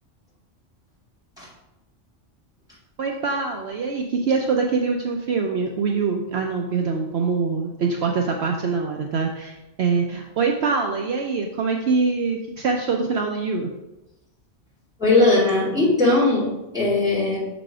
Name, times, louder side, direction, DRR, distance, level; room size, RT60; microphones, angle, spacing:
voice 1, 3.0-13.7, right 4 dB, 65° right, 2 dB, 0.8 m, -24 dB
voice 2, 15.0-17.4, left 2 dB, 5° right, -6 dB, 2.2 m, -19 dB
6.6 x 4.0 x 4.9 m, 0.97 s
omnidirectional pair, 1.3 m